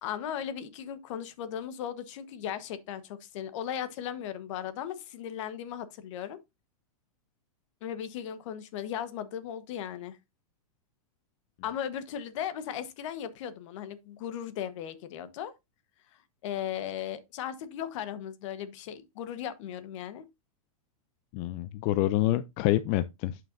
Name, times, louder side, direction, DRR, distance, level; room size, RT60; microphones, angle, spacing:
voice 1, 0.0-6.4 7.8-10.2 11.6-15.5 16.1-20.3, left 9 dB, 55° left, 1.2 m, -37 dB
voice 2, 21.3-23.4, left 14 dB, 40° left, 0.4 m, -27 dB
11.0 x 5.8 x 2.6 m
hypercardioid pair, 135°, 18 cm